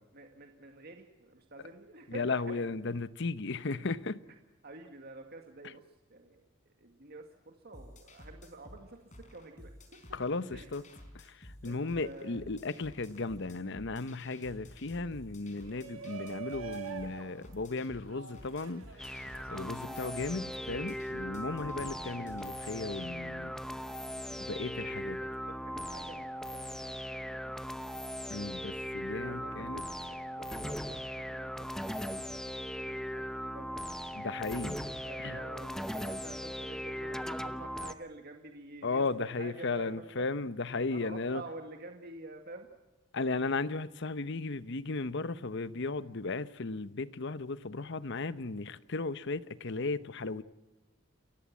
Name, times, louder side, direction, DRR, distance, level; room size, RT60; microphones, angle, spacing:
voice 1, 0.1-2.6 4.6-6.5 6.8-10.0 10.5-10.7 11.6-12.4 19.8-20.0 24.3-27.7 28.6-28.8 29.2-29.6 30.0-33.7 34.6-40.3 40.9-42.7, right 2 dB, 50° right, 2.0 m, -49 dB
voice 2, 2.1-4.2 10.1-10.8 11.3-18.9 19.5-23.5 24.4-25.2 28.3-29.8 34.1-34.8 35.2-35.4 38.8-41.4 43.1-50.4, left 3 dB, 60° left, 0.9 m, -35 dB
sound 1, 7.7-22.5, left 1 dB, 35° left, 4.7 m, -53 dB
Shout, 15.5-20.6, right 7 dB, 80° right, 2.6 m, -46 dB
sound 2, 19.0-37.9, equal, 5° left, 0.9 m, -39 dB
29.0 x 15.5 x 7.5 m
head